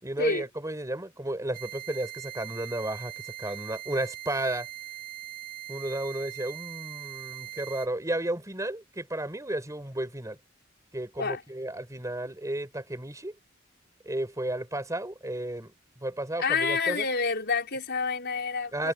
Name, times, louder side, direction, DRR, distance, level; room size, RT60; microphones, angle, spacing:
voice 1, 0.0-4.7 5.7-10.4 10.9-13.4 14.0-15.7 16.0-17.1 18.7-18.9, right 1 dB, 15° right, 5.2 m, -33 dB
sound 1, 1.5-7.9, right 13 dB, 45° right, 3.3 m, -41 dB
voice 2, 16.4-18.9, left 4 dB, 55° left, 5.1 m, -28 dB
head